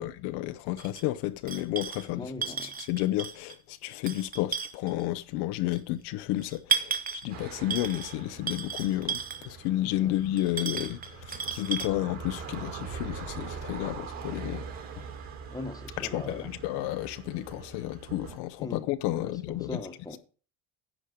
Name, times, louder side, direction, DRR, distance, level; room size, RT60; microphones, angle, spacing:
voice 1, 0.0-14.7 16.0-19.8, left 15 dB, 75° left, 0.8 m, -32 dB
sound 1, 0.8-1.0 1.5-2.1 2.4-3.5 3.9-5.0 5.7-5.8 6.4-7.3 7.7-8.2 8.5-9.5 10.4-11.9, right 7 dB, 20° right, 0.8 m, -33 dB
voice 2, 2.1-2.7 10.0-10.1 15.5-16.6 18.6-18.8 19.2-20.2, left 2 dB, 10° left, 1.3 m, -40 dB
sound 2, 7.3-18.4, right 6 dB, 45° right, 3.0 m, -42 dB
10.5 x 5.3 x 6.5 m
cardioid pair, 135°, 40 cm